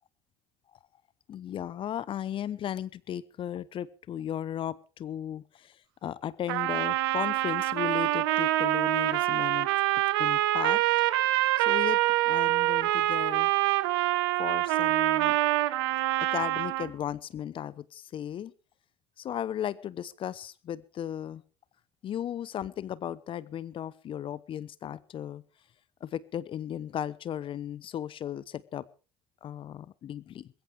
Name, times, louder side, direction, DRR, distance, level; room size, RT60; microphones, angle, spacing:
voice 1, 1.3-5.7 6.0-9.7 10.2-10.8 11.6-12.0 12.3-13.5 14.4-15.4 16.2-18.5 19.2-21.4 22.0-25.4 26.0-28.8 29.4-30.5, left 10 dB, 45° left, 20 dB, 0.9 m, -36 dB
Trumpet, 6.5-16.9, right 17 dB, 70° right, 1.2 m, -26 dB
21.0 x 15.0 x 3.5 m, 0.35 s
hypercardioid pair, 65°, 13 cm